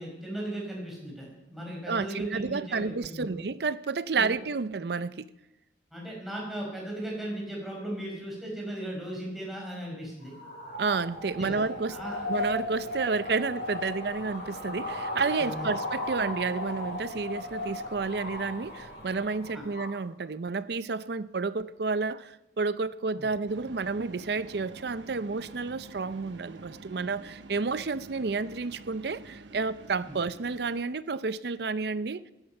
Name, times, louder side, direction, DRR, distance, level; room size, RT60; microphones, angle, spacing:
voice 1, 0.0-3.3 4.1-4.3 5.9-10.3 11.3-12.2 15.3-15.7 19.5-19.6 23.2-23.3 30.1-30.2, right 1 dB, ahead, 5.0 m, -37 dB
voice 2, 1.9-5.3 10.8-12.0 12.3-32.2, right 4 dB, 60° right, 0.5 m, -30 dB
sound 1, 10.2-20.0, left 1 dB, 65° left, 6.5 m, -36 dB
sound 2, 23.5-30.8, right 2 dB, 85° right, 1.1 m, -48 dB
14.0 x 12.0 x 5.5 m
head